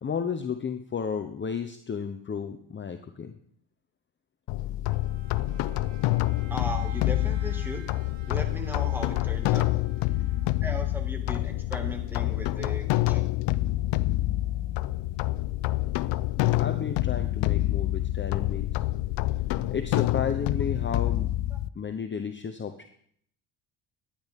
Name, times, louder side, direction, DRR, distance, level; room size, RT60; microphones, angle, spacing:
voice 1, 0.0-3.3 10.2-10.3 16.5-18.7 19.7-21.3 21.8-22.9, left 6 dB, 25° left, 7 dB, 0.8 m, -33 dB
sound 1, 4.5-21.7, left 16 dB, 80° left, 0.5 m, -27 dB
Bowed string instrument, 4.9-11.3, right 8 dB, 80° right, 1.4 m, -52 dB
voice 2, 6.5-7.8 8.3-9.7 10.6-13.3 20.8-21.1 21.5-21.6, right 1 dB, 5° right, 3 dB, 2.0 m, -37 dB
sound 2, 11.2-21.1, left 7 dB, 55° left, 1.7 m, -55 dB
11.5 x 9.9 x 3.6 m, 0.65 s
cardioid pair, 90°, 42 cm